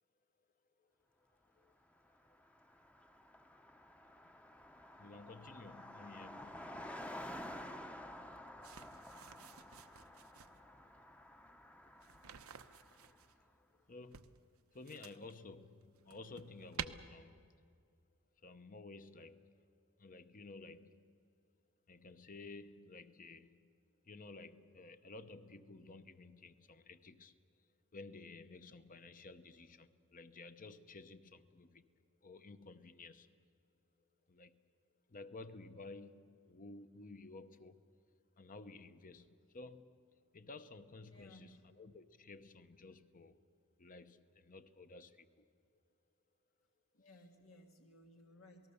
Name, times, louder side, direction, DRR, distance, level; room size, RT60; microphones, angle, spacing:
Car passing by, 2.0-2.1 2.3-13.3, left 1 dB, 5° left, 0.8 m, -51 dB
voice 1, 5.0-7.5 12.5-17.7 18.4-19.7 20.0-21.2 21.9-23.8 24.0-27.3 27.9-31.9 32.2-33.5 34.3-34.6 35.1-37.8 38.4-40.0 40.3-43.4 43.8-45.5, left 3 dB, 40° left, 0.9 m, -54 dB
sound 1, 8.6-10.6 12.0-13.3 14.1-15.4 15.8-16.9, right 8 dB, 85° right, 0.9 m, -50 dB
voice 2, 41.1-41.6 46.9-48.7, left 1 dB, 80° left, 1.8 m, -60 dB
28.0 x 19.0 x 6.9 m
head